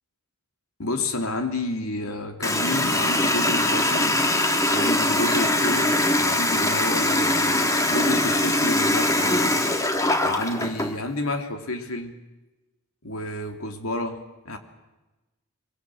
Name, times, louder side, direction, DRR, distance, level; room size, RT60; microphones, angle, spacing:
voice 1, 0.8-4.2 4.7-7.6 7.9-9.6 10.2-12.2 13.0-14.6, left 1 dB, 70° left, 5 dB, 3.0 m, -30 dB
Water tap faucet, 2.4-10.9, left 1 dB, 15° left, 1.9 m, -22 dB
23.5 x 23.5 x 7.8 m, 1.1 s
head